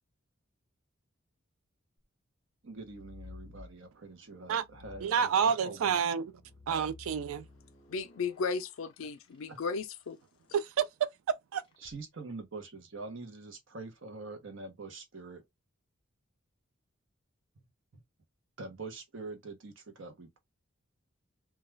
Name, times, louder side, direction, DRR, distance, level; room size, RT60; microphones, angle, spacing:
voice 1, 2.6-6.0 9.5-9.6 11.8-15.4 18.6-20.4, right 3 dB, 65° right, 0.8 m, -44 dB
sound 1, 2.7-4.1 4.6-10.1 11.6-12.0, left 3 dB, 25° left, 0.6 m, -54 dB
voice 2, 5.0-6.3 6.7-7.4 10.5-10.9 11.5-11.6, right 7 dB, 80° right, 0.3 m, -29 dB
voice 3, 7.9-10.2, left 4 dB, 75° left, 0.4 m, -35 dB
2.3 x 2.2 x 3.1 m
head